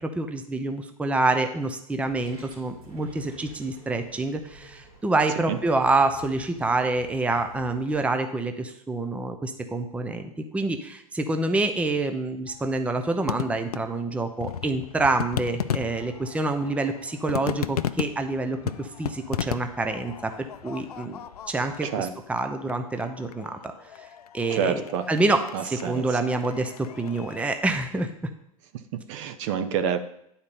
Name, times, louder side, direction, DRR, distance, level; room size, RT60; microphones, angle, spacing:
voice 1, 0.0-21.2 21.5-23.6 24.3-24.8 25.1-28.1, right 2 dB, 5° right, 7 dB, 0.6 m, -27 dB
sound 1, 1.9-8.0, right 1 dB, 85° right, 2.9 m, -47 dB
sound 2, 12.5-27.6, left 10 dB, 90° left, 0.4 m, -36 dB
voice 2, 24.5-25.1 25.5-26.1 28.9-30.0, right 8 dB, 55° right, 9 dB, 0.8 m, -28 dB
9.6 x 4.4 x 5.3 m, 0.75 s
hypercardioid pair, 105°, 19 cm